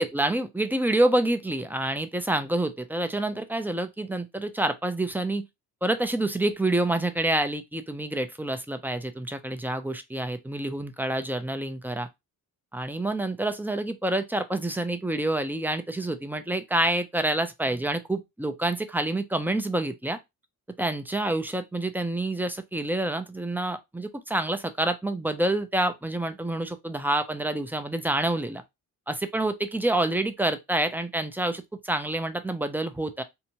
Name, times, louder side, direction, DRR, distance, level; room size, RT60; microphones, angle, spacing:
voice 1, 0.0-5.5 5.8-12.1 12.7-20.2 20.8-28.6 29.1-33.2, right 1 dB, 5° right, 0.4 m, -27 dB
2.7 x 2.2 x 2.8 m
cardioid pair, 85°, 37 cm